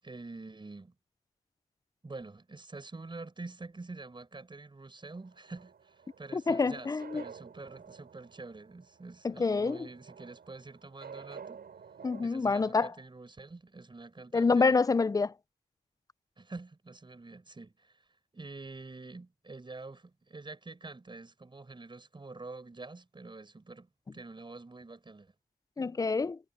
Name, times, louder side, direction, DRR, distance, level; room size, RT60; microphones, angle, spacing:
voice 1, 0.0-0.9 2.0-11.6 12.2-14.8 16.4-18.1 18.3-25.3, right 3 dB, 30° right, 7.0 m, -46 dB
sound 1, 5.1-12.3, right 6 dB, 75° right, 7.9 m, -51 dB
voice 2, 6.3-7.2 9.2-9.9 12.0-12.9 14.3-15.3 25.8-26.4, left 4 dB, 20° left, 0.4 m, -27 dB
wide cardioid pair, 95°, 16 cm